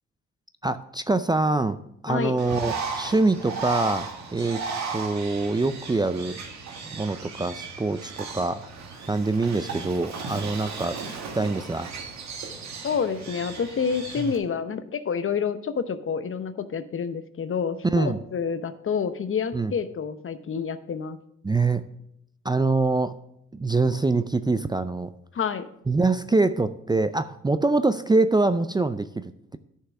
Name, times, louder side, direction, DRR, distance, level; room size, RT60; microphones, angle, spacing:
voice 1, 0.6-1.8 2.0-4.6 4.9-6.4 6.9-8.7 9.1-11.0 11.3-11.9 14.2-14.3 17.9-18.2 19.5-19.7 21.4-21.8 22.4-23.2 23.5-25.1 25.9-29.6, right 3 dB, 15° right, 12 dB, 0.5 m, -24 dB
voice 2, 2.1-2.4 12.8-21.2 25.3-25.6, left 6 dB, 45° left, 12 dB, 0.9 m, -28 dB
Bird, 2.4-14.4, right 5 dB, 65° right, 1.8 m, -36 dB
9.8 x 5.6 x 6.0 m, 0.76 s
supercardioid pair, 55°, 30 cm